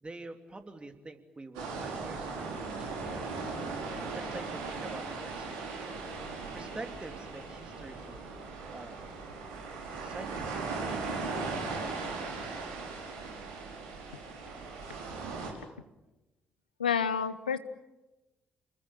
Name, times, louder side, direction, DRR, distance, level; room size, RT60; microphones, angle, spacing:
voice 1, 0.0-3.3 4.1-5.9 6.5-8.2 8.7-9.1 10.0-10.5, right 2 dB, 20° right, 7 dB, 3.2 m, -46 dB
sound 1, 1.5-15.5, right 4 dB, 70° right, 5.2 m, -38 dB
voice 2, 16.8-17.6, left 7 dB, 80° left, 13 dB, 0.8 m, -29 dB
30.0 x 21.0 x 8.9 m, 1.0 s
figure-of-eight pair, 40°, 5 cm